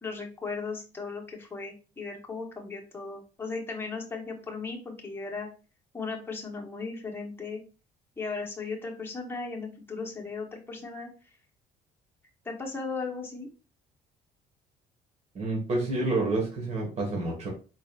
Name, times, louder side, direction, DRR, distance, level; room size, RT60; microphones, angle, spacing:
voice 1, 0.0-5.5 5.9-7.6 8.2-11.1 12.4-13.5, left 4 dB, 15° left, 0 dB, 1.1 m, -36 dB
voice 2, 15.3-17.5, right 2 dB, 40° right, -2 dB, 1.6 m, -28 dB
4.2 x 3.8 x 2.4 m, 0.35 s
cardioid pair, 110°, 17 cm